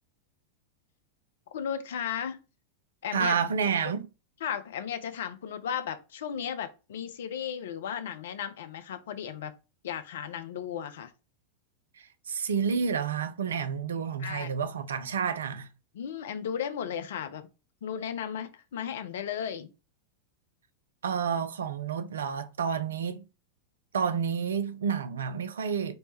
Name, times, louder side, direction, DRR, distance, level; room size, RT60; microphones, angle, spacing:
voice 1, 1.5-2.4 3.0-3.4 4.4-9.5 9.8-11.1 14.2-14.5 15.9-17.5 17.8-19.7, left 8 dB, 60° left, 0.4 m, -35 dB
voice 2, 3.1-4.1 12.0-15.7 21.0-23.2 23.9-25.9, right 6 dB, 65° right, 0.3 m, -30 dB
4.2 x 2.1 x 3.2 m
figure-of-eight pair, 90°, 0 cm